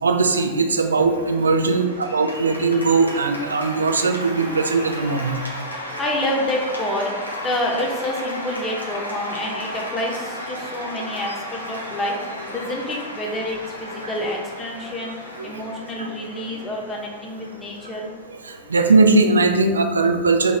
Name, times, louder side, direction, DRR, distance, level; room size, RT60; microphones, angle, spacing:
voice 1, 0.0-5.4 14.0-14.1 15.5-15.6 16.0-16.1 18.3-20.6, right 3 dB, 75° right, 5 dB, 0.3 m, -19 dB
Cheering / Applause, 0.7-19.9, equal, 85° left, 0.5 m, -34 dB
voice 2, 5.5-7.1 7.4-18.1, left 1 dB, 20° left, -1 dB, 0.7 m, -28 dB
3.0 x 2.4 x 4.0 m, 1.3 s
figure-of-eight pair, 90°, 0 cm